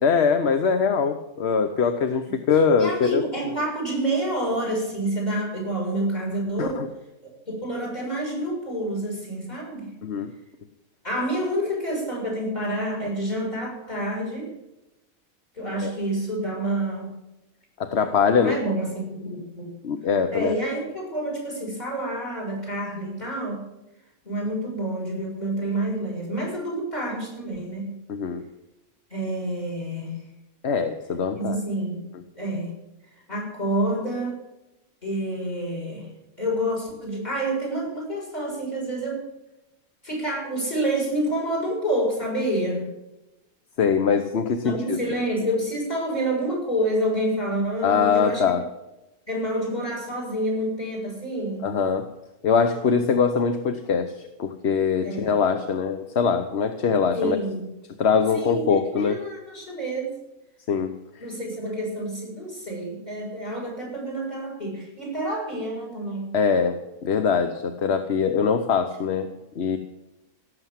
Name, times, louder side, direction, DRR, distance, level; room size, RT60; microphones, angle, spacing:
voice 1, 0.0-3.2 6.6-6.9 10.0-10.3 15.8-15.9 17.8-18.6 19.8-20.5 28.1-28.4 30.6-31.6 43.8-45.0 47.8-48.6 51.6-52.0 52.4-54.1 54.4-57.4 58.0-59.2 60.7-60.9 66.3-69.3 69.6-69.8, left 6 dB, 50° left, 8 dB, 1.1 m, -22 dB
voice 2, 2.3-6.8 7.2-9.9 11.0-14.5 15.6-17.1 18.3-19.7 20.3-23.6 24.2-27.9 29.1-30.2 31.4-32.1 32.4-32.7 33.3-34.4 35.0-36.1 36.4-39.2 40.0-42.9 44.6-48.6 49.3-51.7 55.0-55.3 57.1-57.7 58.3-60.2 61.2-66.3, right 1 dB, 30° left, -2 dB, 7.0 m, -28 dB
17.0 x 7.9 x 7.4 m, 0.95 s
omnidirectional pair, 1.5 m